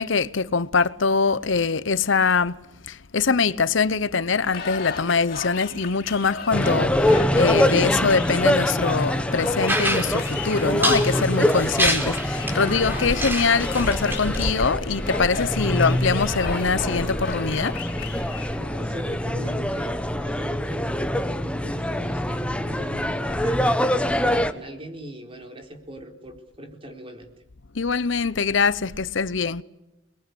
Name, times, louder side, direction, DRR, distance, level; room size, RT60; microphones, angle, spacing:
voice 1, 0.0-2.6 2.9-17.8 27.7-29.6, left 5 dB, 80° left, 0.9 m, -23 dB
sound 1, 4.4-18.8, left 5 dB, 50° left, 4.3 m, -35 dB
sound 2, 6.5-24.5, left 1 dB, 5° left, 1.2 m, -24 dB
sound 3, 9.7-14.4, right 1 dB, 10° right, 4.2 m, -27 dB
voice 2, 18.5-27.3, right 1 dB, 30° right, 4.2 m, -40 dB
29.0 x 21.5 x 8.4 m
head